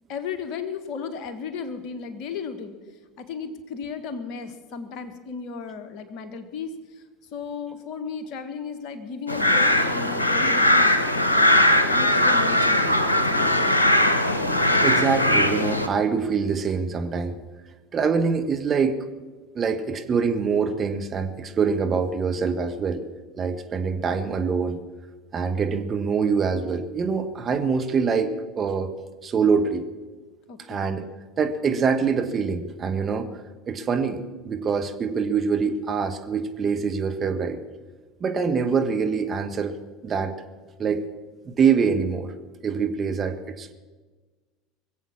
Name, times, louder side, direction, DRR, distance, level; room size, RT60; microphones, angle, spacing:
voice 1, 0.1-2.8 3.2-6.7 7.3-11.5 11.9-12.9 13.3-13.8 30.5-30.9, left 5 dB, 50° left, 9 dB, 1.5 m, -35 dB
sound 1, 9.3-15.9, left 1 dB, 85° left, 1.0 m, -20 dB
voice 2, 14.8-17.4 17.9-19.0 19.5-23.0 23.4-24.8 25.3-28.9 29.2-29.8 30.7-31.1 31.4-33.3 33.6-37.6 38.2-39.8 40.0-40.3 40.8-41.0 41.4-42.3 42.6-43.7, right 5 dB, 30° right, 6 dB, 1.4 m, -24 dB
21.5 x 8.1 x 7.3 m, 1.3 s
figure-of-eight pair, 70°, 0 cm